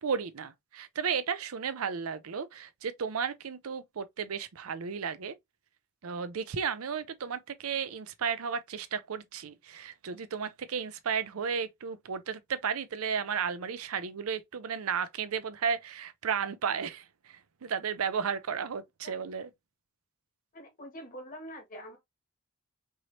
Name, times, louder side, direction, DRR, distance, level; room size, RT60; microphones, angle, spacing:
voice 1, 0.0-5.4 6.0-19.5, right 6 dB, 70° right, 0.5 m, -34 dB
voice 2, 20.5-22.0, equal, 40° left, 1.8 m, -45 dB
4.7 x 3.0 x 2.7 m
head